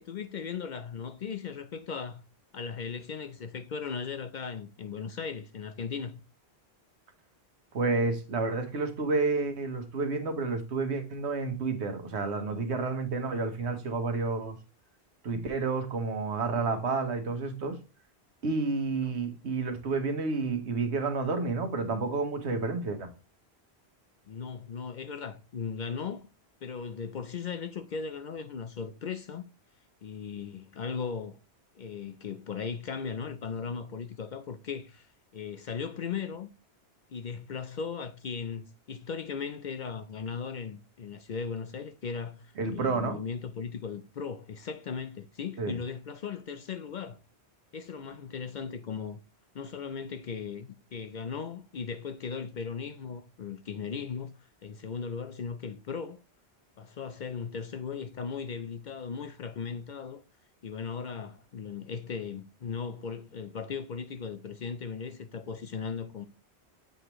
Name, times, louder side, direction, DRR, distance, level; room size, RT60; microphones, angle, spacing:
voice 1, 0.0-2.2 2.5-6.2 19.0-19.1 24.3-26.3 26.6-29.4 30.0-31.4 31.8-36.5 37.1-47.2 47.7-49.2 49.5-54.3 54.6-56.2 56.8-60.2 60.6-66.2, left 6 dB, 55° left, 0.6 m, -37 dB
voice 2, 7.7-14.6 15.2-17.8 18.4-23.1 42.6-43.2 45.6-45.8, right 3 dB, 85° right, 1.4 m, -30 dB
7.8 x 4.8 x 3.0 m
omnidirectional pair, 1.1 m